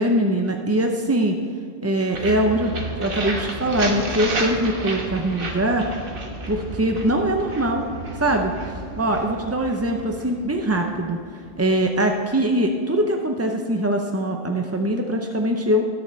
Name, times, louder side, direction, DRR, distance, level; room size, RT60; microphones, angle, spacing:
voice 1, 0.0-1.3 1.8-2.7 3.0-5.8 6.5-7.9 8.2-8.5 9.0-11.2 11.6-15.8, right 1 dB, 25° right, 3 dB, 0.3 m, -22 dB
sound 1, 2.1-11.9, right 2 dB, 50° right, 1.3 m, -32 dB
19.0 x 6.9 x 3.2 m, 2.2 s
omnidirectional pair, 1.2 m